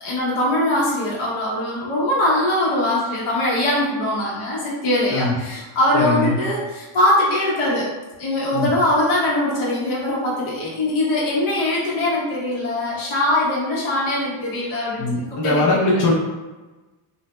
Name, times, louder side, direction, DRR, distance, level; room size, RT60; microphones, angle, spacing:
voice 1, 0.0-7.9 8.2-15.7, left 1 dB, 70° left, -5 dB, 1.3 m, -22 dB
voice 2, 5.9-6.4 8.5-8.7 15.0-16.1, left 2 dB, 40° left, -5 dB, 0.6 m, -20 dB
2.6 x 2.1 x 3.0 m, 1.2 s
cardioid pair, 110°, 50 cm